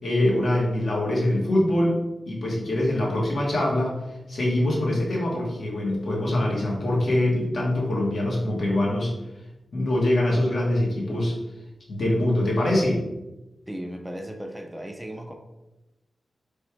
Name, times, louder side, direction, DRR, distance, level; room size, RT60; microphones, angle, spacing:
voice 1, 0.0-2.0 2.3-3.9 4.3-9.1 9.7-11.3 11.9-13.0, left 1 dB, 65° left, -3 dB, 1.2 m, -23 dB
voice 2, 13.7-15.3, equal, 10° right, 4 dB, 0.3 m, -36 dB
3.2 x 2.3 x 4.4 m, 0.99 s
wide cardioid pair, 90°, 0 cm